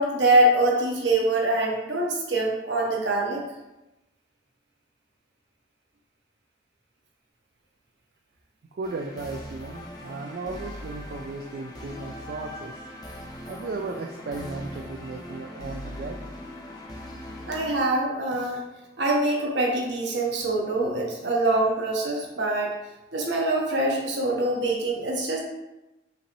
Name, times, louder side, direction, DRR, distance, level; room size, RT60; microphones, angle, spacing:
voice 1, 0.0-3.4 17.5-18.6 19.0-22.8 23.1-25.4, right 2 dB, 70° right, -2 dB, 1.0 m, -24 dB
voice 2, 8.7-12.8 13.5-16.2, right 3 dB, 55° right, 1 dB, 0.3 m, -35 dB
sound 1, 8.8-17.7, left 1 dB, 20° left, 0.5 m, -40 dB
5.7 x 3.0 x 2.6 m, 0.97 s
head